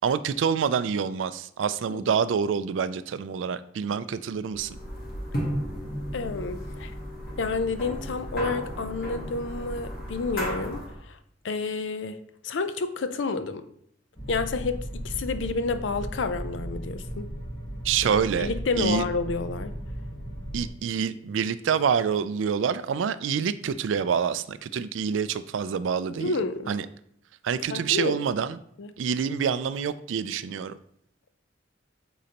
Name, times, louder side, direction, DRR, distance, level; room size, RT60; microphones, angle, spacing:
voice 1, 0.0-4.8 17.8-18.5 18.8-19.0 20.5-26.3 26.7-26.9 27.4-28.6 29.0-30.8, right 7 dB, 85° right, 14 dB, 0.4 m, -27 dB
sound 1, 4.5-11.0, equal, 50° left, 1.6 m, -34 dB
voice 2, 6.1-6.9 7.4-11.2 11.4-13.6 14.3-17.3 18.0-18.1 18.4-19.8 26.2-26.7 27.7-28.2 28.8-28.9, left 4 dB, 75° left, 11 dB, 0.5 m, -30 dB
sound 2, 14.2-20.7, right 1 dB, 20° left, 2.3 m, -36 dB
8.3 x 3.9 x 2.9 m, 0.67 s
head